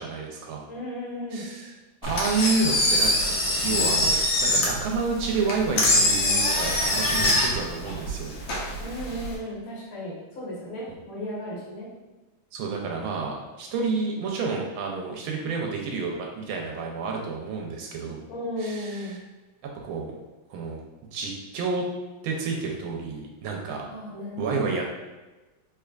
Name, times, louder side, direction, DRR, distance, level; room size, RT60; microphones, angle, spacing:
voice 1, 0.0-0.7 1.3-1.7 2.0-3.3 3.6-8.4 12.5-18.3 18.6-19.2 19.6-20.1 20.5-20.8 21.1-21.8 22.2-23.8 24.4-24.8, right 4 dB, 85° right, 0 dB, 1.5 m, -30 dB
voice 2, 0.7-1.4 8.8-11.9 18.3-19.2 23.9-24.7, left 1 dB, 50° left, -6 dB, 1.6 m, -35 dB
Engine, 2.0-9.3, left 1 dB, 65° left, 1.3 m, -24 dB
3.6 x 3.3 x 2.3 m, 1.2 s
omnidirectional pair, 2.2 m